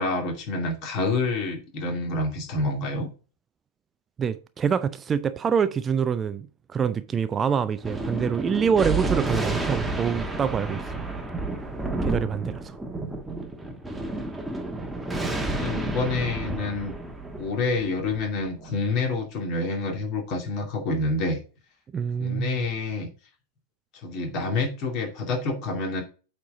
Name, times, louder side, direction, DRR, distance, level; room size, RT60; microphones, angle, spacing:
voice 1, 0.0-3.1 15.5-16.9 17.4-21.4 22.2-23.1 24.0-26.0, left 3 dB, 40° left, 2.5 m, -28 dB
voice 2, 4.2-10.9 12.0-12.8 21.9-22.6, right 7 dB, 20° right, 0.4 m, -26 dB
Thunder, 7.8-18.7, right 2 dB, 5° right, 1.2 m, -30 dB
8.4 x 4.4 x 3.9 m
figure-of-eight pair, 90°, 0 cm